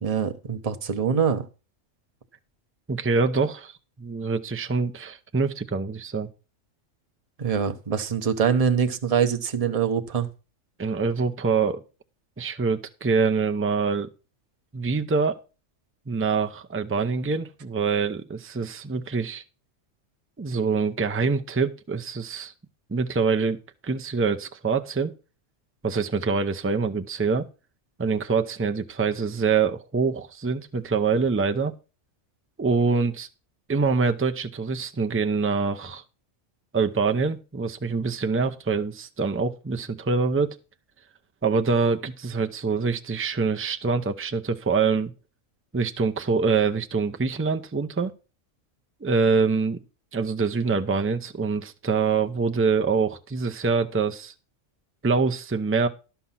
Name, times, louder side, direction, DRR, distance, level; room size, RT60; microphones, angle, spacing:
voice 1, 0.0-1.5 7.4-10.3, right 7 dB, 35° right, 0.9 m, -24 dB
voice 2, 2.9-3.7 4.0-6.3 10.8-11.8 12.4-14.1 14.7-15.4 16.1-19.4 20.4-22.5 22.9-23.6 23.8-25.1 25.8-27.5 28.0-31.7 32.6-33.3 33.7-36.0 36.7-40.6 41.4-45.1 45.7-48.1 49.0-49.8 50.1-54.3 55.0-55.9, right 4 dB, 15° right, 0.5 m, -25 dB
12.5 x 5.8 x 5.7 m
omnidirectional pair, 1.3 m